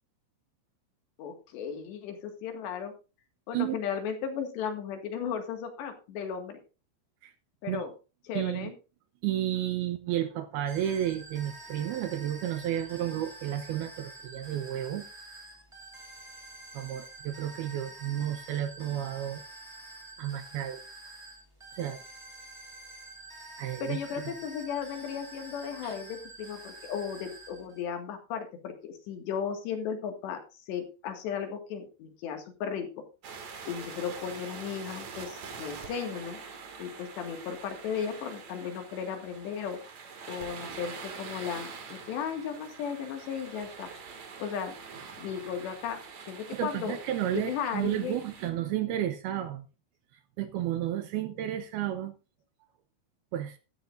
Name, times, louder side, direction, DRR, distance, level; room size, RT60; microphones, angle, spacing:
voice 1, 1.2-2.9 3.5-6.6 7.6-7.9 8.3-8.7 23.8-32.9 33.7-36.4 36.8-39.8 40.3-43.9 44.4-44.7 45.2-46.0 46.3-47.0 47.3-48.2, left 7 dB, 75° left, 4.1 m, -35 dB
voice 2, 8.3-8.7 9.2-15.1 16.7-19.4 20.2-20.8 21.7-22.0 23.6-24.0 25.8-26.0 46.5-49.7 50.4-52.2 53.3-53.6, right 12 dB, 75° right, 2.4 m, -32 dB
sound 1, 10.7-27.8, right 2 dB, 15° right, 1.1 m, -48 dB
sound 2, 33.2-48.5, right 5 dB, 45° right, 2.9 m, -45 dB
14.0 x 13.0 x 2.6 m
omnidirectional pair, 5.1 m